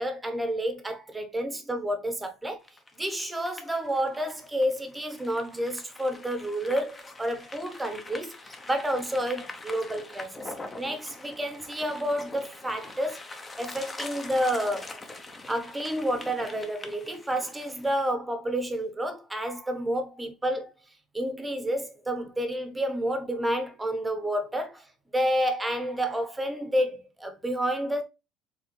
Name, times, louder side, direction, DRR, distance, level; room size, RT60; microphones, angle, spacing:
voice 1, 0.0-2.6 3.0-10.5 10.8-13.2 13.6-14.9 15.5-20.7 21.1-24.9 25.1-28.0, equal, 5° right, 1.0 m, -30 dB
sound 1, 2.6-18.1, left 2 dB, 15° left, 0.8 m, -44 dB
4.8 x 3.5 x 3.1 m
cardioid pair, 150°, 0 cm